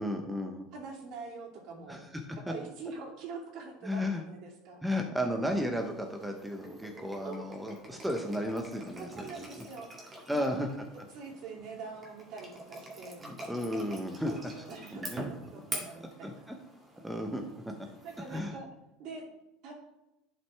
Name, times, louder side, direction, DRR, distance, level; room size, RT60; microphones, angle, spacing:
voice 1, 0.0-0.7 1.9-2.1 3.8-4.2 4.8-9.5 10.3-10.7 13.2-14.3 14.6-14.7 15.1-15.2 16.2-16.3 17.0-17.4 17.8-17.9 18.3-18.6, equal, 5° right, 3 dB, 0.9 m, -33 dB
voice 2, 0.7-2.1 2.5-4.8 7.2-7.4 9.0-10.6 11.1-13.2 14.1-16.3 18.0-18.7 19.0-19.2 19.6-19.7, right 4 dB, 55° right, -1 dB, 2.8 m, -44 dB
sound 1, 5.7-18.4, right 1 dB, 20° right, 2.2 m, -46 dB
11.0 x 6.0 x 3.5 m, 0.91 s
supercardioid pair, 145°, 0 cm